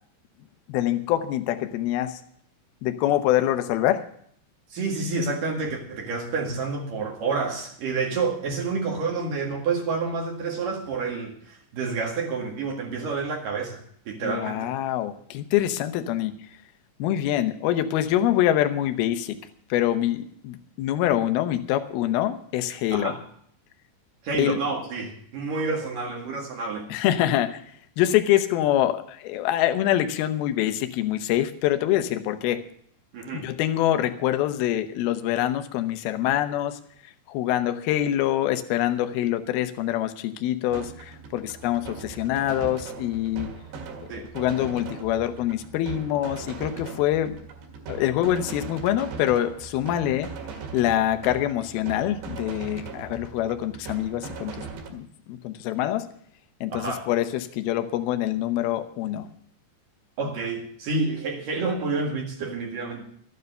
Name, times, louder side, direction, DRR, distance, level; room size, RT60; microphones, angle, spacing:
voice 1, 0.7-2.2 2.8-4.1 14.2-16.3 17.0-19.4 19.7-23.1 24.4-24.6 26.9-27.6 28.0-32.6 33.3-36.8 37.3-43.5 44.2-47.4 47.9-50.3 50.7-54.6 54.9-56.1 56.6-59.3, left 12 dB, 75° left, 9 dB, 2.3 m, -25 dB
voice 2, 4.7-14.7 22.9-23.2 24.2-26.9 33.1-33.5 44.1-44.3 56.7-57.1 60.2-63.0, right 4 dB, 55° right, 0 dB, 3.0 m, -29 dB
sound 1, 40.7-54.9, right 5 dB, 70° right, 4.0 m, -39 dB
13.5 x 9.5 x 6.6 m, 0.64 s
omnidirectional pair, 5.4 m